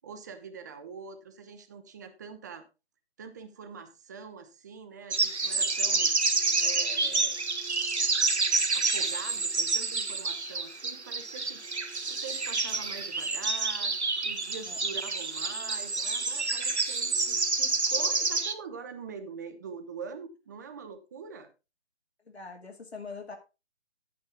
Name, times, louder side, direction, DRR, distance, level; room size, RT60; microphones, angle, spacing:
voice 1, 0.0-2.6 3.2-6.1 6.6-7.4 8.7-11.6 12.1-13.9 14.2-21.5, right 6 dB, 15° right, 8 dB, 0.7 m, -44 dB
sound 1, 5.1-18.5, right 3 dB, 80° right, 1.3 m, -28 dB
voice 2, 22.3-23.4, left 4 dB, 70° left, 3 dB, 2.2 m, -42 dB
9.5 x 8.4 x 3.6 m, 0.28 s
figure-of-eight pair, 140°, 33 cm